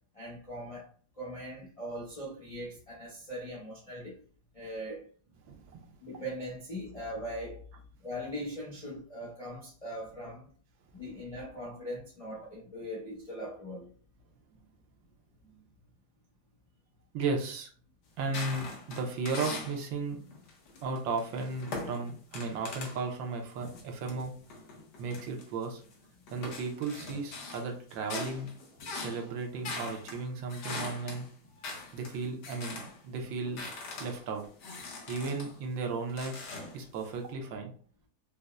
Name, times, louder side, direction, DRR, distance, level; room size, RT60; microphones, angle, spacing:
voice 1, 0.1-0.9 1.2-4.2 4.5-5.0 6.0-7.6 8.0-10.5 10.9-13.9 31.6-31.7, equal, 50° left, 0.4 m, -40 dB
voice 2, 5.4-5.9 15.4-15.5 17.1-17.7 18.2-20.2 20.8-24.3 25.0-25.8 26.3-28.5 28.9-31.3 31.9-33.7 34.0-34.4 35.1-37.7, right 4 dB, 75° right, 1.4 m, -35 dB
sound 1, 18.2-19.8 20.3-23.0 23.6-25.9 26.3-33.0 33.3-35.6 36.1-37.1, left 3 dB, 65° left, 1.3 m, -42 dB
5.2 x 2.0 x 2.3 m
omnidirectional pair, 2.2 m